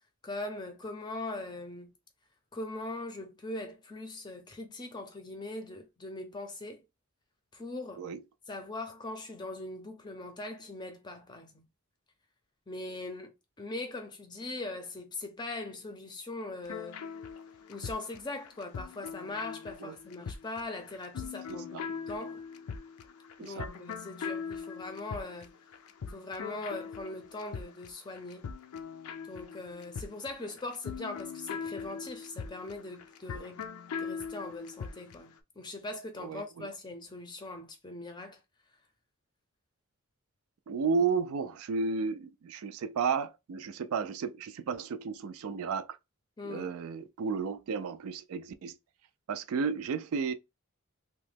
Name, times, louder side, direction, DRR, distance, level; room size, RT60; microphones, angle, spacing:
voice 1, 0.2-1.9 2.5-6.8 7.5-8.0 8.5-11.7 12.7-17.0 17.7-21.8 22.1-22.4 23.4-25.5 26.1-28.5 29.3-33.6 34.0-38.4 46.4-46.7, left 2 dB, 20° left, 0.5 m, -41 dB
sound 1, 16.7-35.3, left 6 dB, 85° left, 0.4 m, -41 dB
voice 2, 36.2-36.7 40.7-46.0 46.4-48.8 49.3-50.3, right 5 dB, 80° right, 0.3 m, -33 dB
3.0 x 2.1 x 3.2 m
head